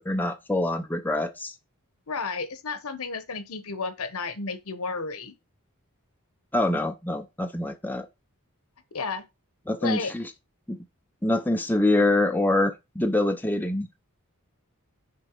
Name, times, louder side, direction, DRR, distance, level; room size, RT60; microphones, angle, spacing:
voice 1, 0.1-1.5 6.5-8.1 9.7-10.3 10.7-10.8 11.2-13.9, left 2 dB, 10° left, 0.6 m, -25 dB
voice 2, 2.1-5.3 8.9-9.2 9.8-10.1, left 4 dB, 70° left, 1.0 m, -32 dB
6.4 x 4.4 x 4.5 m
head